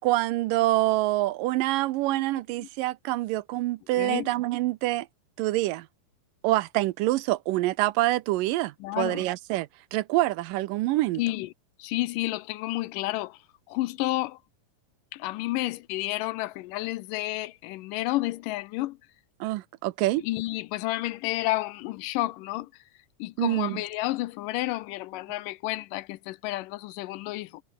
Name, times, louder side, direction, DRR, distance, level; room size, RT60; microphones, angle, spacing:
voice 1, 0.0-5.1 5.4-5.9 6.4-11.2 19.4-20.2 23.4-23.8, right 17 dB, 85° right, 2.3 m, -26 dB
voice 2, 3.9-4.3 8.8-9.2 11.2-11.5 11.8-13.4 13.7-14.4 15.1-19.0 20.2-22.7 23.2-27.6, left 18 dB, 80° left, 2.2 m, -31 dB
omnidirectional pair, 4.0 m